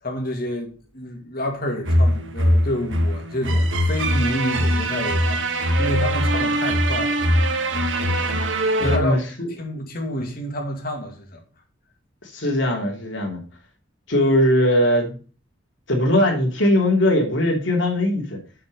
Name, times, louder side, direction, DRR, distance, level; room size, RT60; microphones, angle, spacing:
voice 1, 0.0-7.2 8.8-9.2 9.5-11.4, left 1 dB, 50° left, 2.3 m, -29 dB
sound 1, 1.8-9.0, equal, 85° right, 1.2 m, -21 dB
voice 2, 8.8-9.5 12.2-13.4 14.1-15.2 15.9-18.4, left 1 dB, 75° left, 3.0 m, -20 dB
7.7 x 5.7 x 5.3 m
head